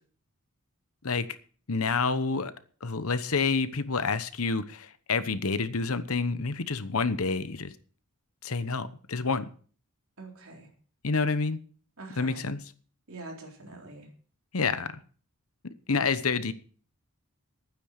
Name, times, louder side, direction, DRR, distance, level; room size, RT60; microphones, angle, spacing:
voice 1, 1.7-2.5 2.8-7.7 8.4-9.5 11.0-11.6 12.2-12.6 14.5-14.9 15.9-16.5, left 4 dB, 75° left, 1.0 m, -28 dB
voice 2, 10.2-10.7 12.0-12.4 13.1-14.1, right 2 dB, 65° right, 3.9 m, -44 dB
12.0 x 9.6 x 6.5 m
head